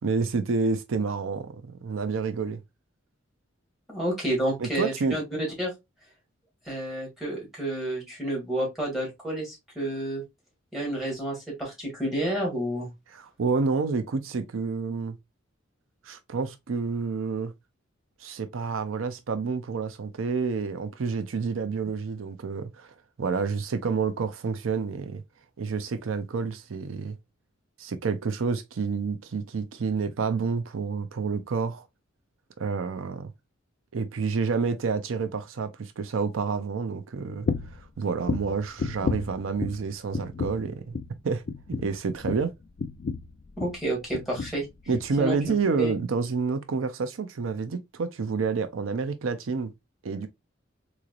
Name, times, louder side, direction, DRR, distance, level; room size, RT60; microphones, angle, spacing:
voice 1, 0.0-2.6 4.6-5.2 13.1-15.2 16.0-17.5 18.2-25.2 25.6-27.2 27.8-31.9 32.6-33.3 33.9-37.5 37.7-40.9 41.2-41.4 41.7-42.5 44.9-49.7 50.0-50.3, right 5 dB, 85° right, 0.5 m, -29 dB
voice 2, 3.9-5.2 5.6-5.7 6.7-10.2 10.7-12.9 43.6-44.7 45.2-46.0, right 1 dB, ahead, 2.1 m, -30 dB
sound 1, 37.5-37.8 38.2-39.9 40.1-40.7 40.9-41.2 41.5-43.8 44.1-44.6 44.9-45.1 45.5-45.6, left 4 dB, 45° left, 0.3 m, -32 dB
3.9 x 3.1 x 2.4 m
head